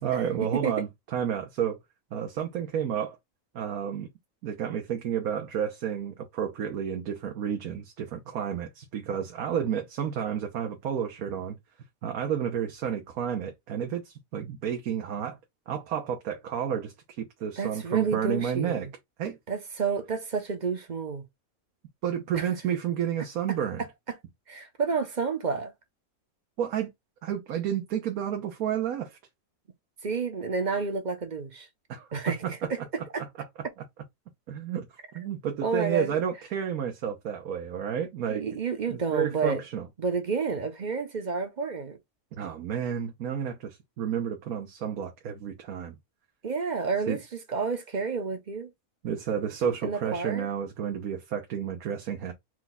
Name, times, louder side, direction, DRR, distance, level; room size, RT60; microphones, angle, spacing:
voice 1, 0.0-1.8 2.1-3.2 3.5-4.1 4.4-11.6 12.0-15.4 15.7-18.9 19.2-19.4 22.0-23.8 26.6-26.9 27.2-29.2 31.9-32.1 32.4-32.5 34.5-34.9 35.1-38.4 38.9-39.9 42.3-46.0 47.1-47.2 49.0-52.3, right 8 dB, 80° right, 1.3 m, -31 dB
voice 2, 17.6-18.9 19.5-21.2 22.3-22.5 24.5-25.7 30.0-31.7 32.1-33.2 35.6-36.2 38.3-39.6 40.0-42.0 46.4-47.2 47.5-48.7 49.8-50.5, right 5 dB, 40° right, 0.7 m, -30 dB
4.6 x 2.3 x 4.0 m
omnidirectional pair, 1.5 m